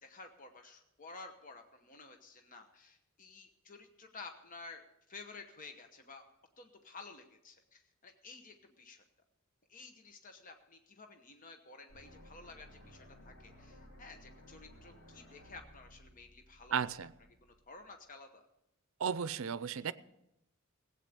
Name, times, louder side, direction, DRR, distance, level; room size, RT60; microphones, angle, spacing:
voice 1, 0.0-6.2 6.6-9.0 9.7-16.8 17.4-18.4, left 3 dB, 40° left, 5 dB, 1.0 m, -53 dB
sound 1, 11.9-17.9, equal, 90° left, 3.9 m, -58 dB
voice 2, 16.7-17.1 19.0-19.9, right 7 dB, 70° right, 17 dB, 0.5 m, -34 dB
16.5 x 8.3 x 6.7 m, 0.87 s
head